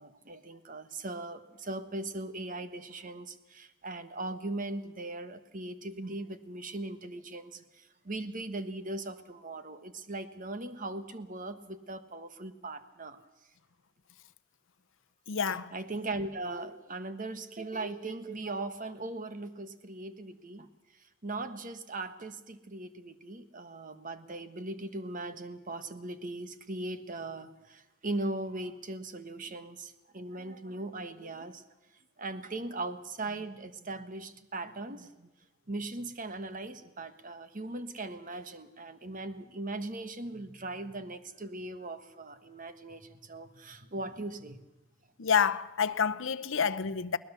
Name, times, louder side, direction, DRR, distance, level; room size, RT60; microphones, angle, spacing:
voice 1, 0.0-13.2 15.7-31.6 32.2-35.3 35.7-44.6, right 2 dB, 40° right, 1.3 m, -39 dB
voice 2, 15.3-15.7 45.2-47.2, left 7 dB, 60° left, 0.7 m, -28 dB
21.0 x 19.5 x 6.9 m
head